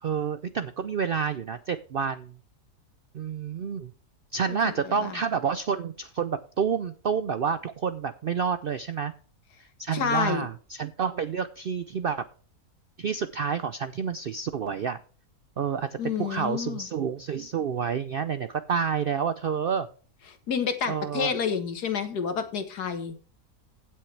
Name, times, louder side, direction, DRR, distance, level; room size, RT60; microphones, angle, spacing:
voice 1, 0.0-2.4 3.1-3.9 4.3-9.1 9.8-12.2 13.0-15.0 15.6-19.9 20.9-21.3, right 6 dB, 80° right, 12 dB, 0.5 m, -29 dB
voice 2, 9.9-10.5 16.0-16.8 20.5-23.1, left 6 dB, 90° left, 9 dB, 1.9 m, -29 dB
16.0 x 6.4 x 3.3 m, 0.40 s
omnidirectional pair, 1.6 m